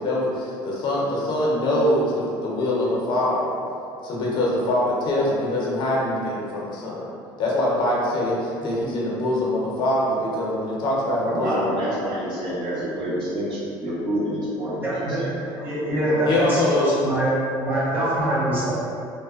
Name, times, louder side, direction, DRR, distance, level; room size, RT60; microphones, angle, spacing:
voice 1, 0.0-3.6 4.0-7.1 7.4-11.7 16.2-17.0, left 1 dB, 50° left, -4 dB, 0.6 m, -23 dB
voice 2, 11.2-14.9 15.2-16.4, equal, 55° right, -10 dB, 1.0 m, -28 dB
voice 3, 14.8-15.2 15.6-17.3 17.5-18.7, right 1 dB, 20° right, -9 dB, 1.0 m, -24 dB
2.7 x 2.1 x 2.3 m, 2.5 s
cardioid pair, 115°, 10 cm